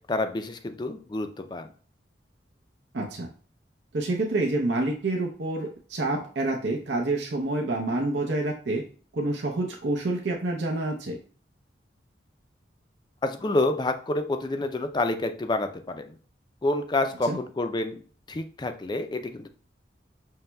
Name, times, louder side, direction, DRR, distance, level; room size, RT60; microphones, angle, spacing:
voice 1, 0.1-1.7 13.2-16.1 16.6-18.0 18.3-19.5, left 2 dB, 25° left, 8 dB, 0.3 m, -28 dB
voice 2, 2.9-3.3 3.9-8.8 9.1-11.2 17.3-17.4, right 2 dB, 75° right, 0 dB, 0.6 m, -28 dB
5.5 x 3.0 x 2.2 m, 0.43 s
head